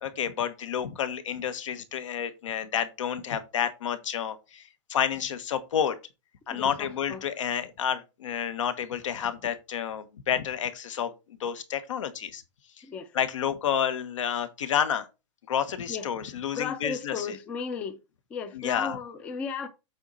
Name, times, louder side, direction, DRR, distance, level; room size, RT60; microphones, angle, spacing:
voice 1, 0.0-4.6 4.9-6.0 6.5-11.1 11.4-12.4 13.1-15.1 15.5-17.4 18.5-19.0, left 8 dB, 85° left, 1.4 m, -30 dB
voice 2, 6.5-7.2 12.8-13.1 15.9-16.1 16.5-18.0 18.3-19.7, left 6 dB, 10° left, 0.3 m, -35 dB
8.0 x 4.5 x 4.1 m
supercardioid pair, 180°, 16 cm